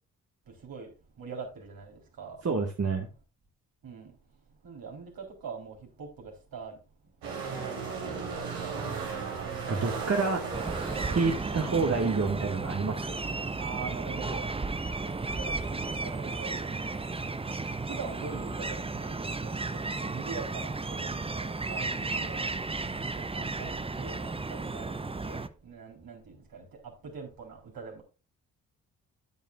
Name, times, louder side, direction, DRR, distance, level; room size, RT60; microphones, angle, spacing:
voice 1, 0.5-0.9 1.2-2.4 3.8-4.1 4.6-6.8 7.5-8.3 8.6-8.7 10.4-10.5 11.5-11.8 13.6-14.5 15.0-17.0 17.9-22.4 23.1-28.0, right 5 dB, 55° right, 3.7 m, -43 dB
voice 2, 2.4-3.1 9.7-10.4 11.1-13.2, right 4 dB, 35° right, 1.9 m, -28 dB
sound 1, 7.2-12.3, right 5 dB, 70° right, 3.2 m, -36 dB
sound 2, 10.5-25.5, right 3 dB, 15° right, 0.8 m, -34 dB
9.3 x 9.2 x 2.4 m
hypercardioid pair, 40°, 41 cm